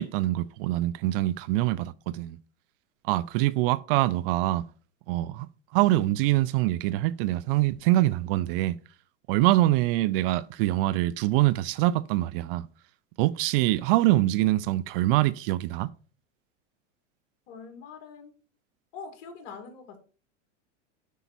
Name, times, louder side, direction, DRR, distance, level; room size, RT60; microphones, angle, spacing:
voice 1, 0.0-2.4 3.0-4.6 5.1-5.5 5.7-8.7 9.3-12.7 13.2-15.9, right 16 dB, 50° right, 0.5 m, -24 dB
voice 2, 17.5-18.3 18.9-20.0, left 5 dB, 55° left, 2.6 m, -43 dB
8.2 x 5.1 x 4.4 m
hypercardioid pair, 120°, 38 cm